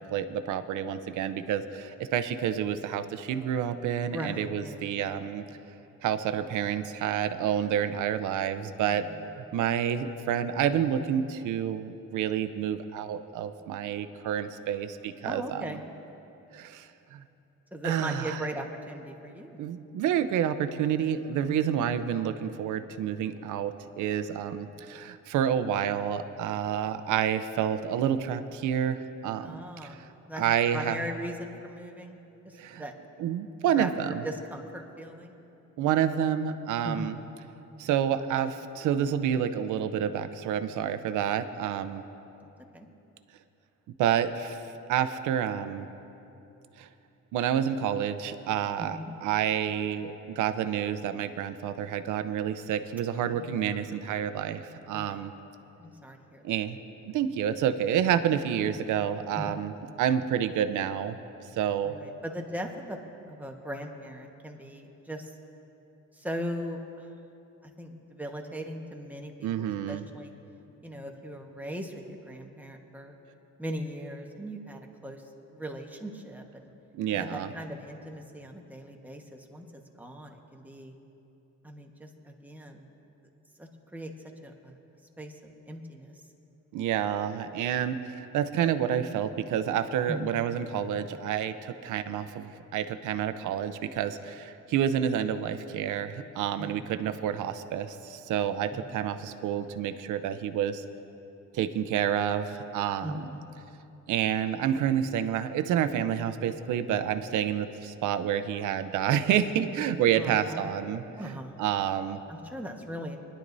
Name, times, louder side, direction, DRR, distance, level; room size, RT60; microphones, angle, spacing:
voice 1, 0.0-5.4 6.0-9.0 9.5-15.8 16.5-17.2 17.8-18.4 19.6-29.6 29.9-30.1 30.4-31.0 32.5-32.8 33.2-34.2 35.8-37.2 37.8-42.0 44.0-45.9 46.8-46.9 47.3-55.3 56.4-56.8 57.1-59.7 60.0-61.2 61.6-62.0 69.4-70.0 76.9-77.5 86.7-100.8 101.5-103.3 104.1-111.3 111.6-112.2, right 9 dB, 85° right, 11 dB, 0.7 m, -29 dB
voice 2, 4.1-5.0 8.9-9.2 15.2-15.8 17.7-19.6 21.5-21.8 29.4-30.4 30.7-32.2 32.4-32.9 33.7-35.4 36.8-37.2 42.7-42.9 48.8-49.1 53.3-53.6 54.9-55.2 55.8-56.5 59.3-59.6 61.8-63.0 63.3-65.3 66.1-67.1 67.6-70.3 70.8-73.1 73.6-75.2 75.5-76.7 77.1-81.0 81.6-82.9 83.6-84.1 84.4-84.8 85.2-86.2 90.1-90.4 96.6-96.8 97.3-97.4 98.7-99.0 103.0-103.5 110.1-110.7 111.2-111.6 112.3-113.2, equal, 5° right, 1 dB, 1.3 m, -39 dB
21.0 x 11.5 x 2.7 m, 2.9 s
cardioid pair, 90°, 30 cm